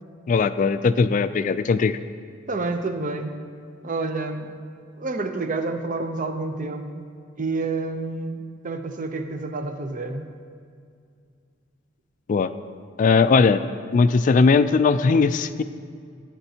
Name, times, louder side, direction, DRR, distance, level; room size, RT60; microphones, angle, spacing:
voice 1, 0.3-2.0 12.3-12.5 13.0-13.6 13.9-15.6, left 4 dB, 40° left, 12 dB, 0.3 m, -19 dB
voice 2, 2.5-3.4 3.8-4.5 5.0-7.1 7.4-10.3, right 3 dB, 40° right, 7 dB, 0.6 m, -29 dB
14.5 x 9.0 x 2.8 m, 2.3 s
head